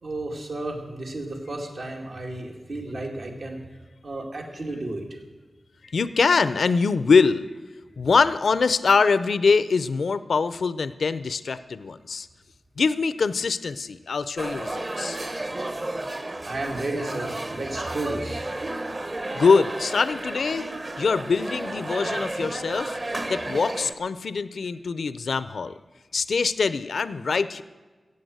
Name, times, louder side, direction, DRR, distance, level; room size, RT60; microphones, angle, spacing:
voice 1, 0.0-3.6 4.0-5.2 16.4-18.5, right 2 dB, 75° right, 0 dB, 2.1 m, -32 dB
voice 2, 5.8-7.5 8.0-12.3 12.8-15.2 19.3-20.7 21.0-23.0 23.3-25.7 26.1-27.6, left 4 dB, 80° left, 14 dB, 0.5 m, -23 dB
sound 1, 14.4-23.9, right 2 dB, 40° right, 1.0 m, -32 dB
15.0 x 8.5 x 8.0 m, 1.3 s
cardioid pair, 60°, 0 cm